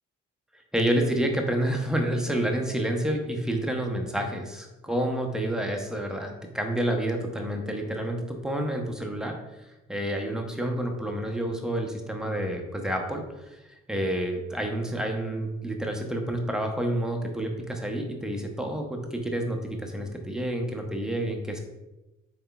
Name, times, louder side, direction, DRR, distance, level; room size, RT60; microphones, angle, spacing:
voice 1, 0.7-9.4 9.9-21.6, right 1 dB, ahead, 2 dB, 0.7 m, -29 dB
3.6 x 3.3 x 2.3 m, 1.0 s
hypercardioid pair, 40°, 33 cm